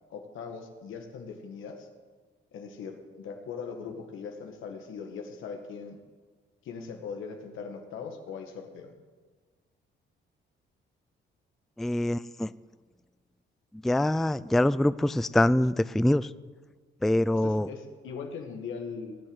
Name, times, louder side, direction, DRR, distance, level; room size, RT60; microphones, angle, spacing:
voice 1, 0.1-1.9 2.5-6.0 6.6-8.9 17.3-19.2, left 5 dB, 80° left, 3 dB, 1.9 m, -40 dB
voice 2, 11.8-12.5 13.8-16.3 17.0-17.7, left 1 dB, ahead, 16 dB, 0.3 m, -24 dB
18.5 x 7.6 x 8.1 m, 1.4 s
cardioid pair, 90°, 20 cm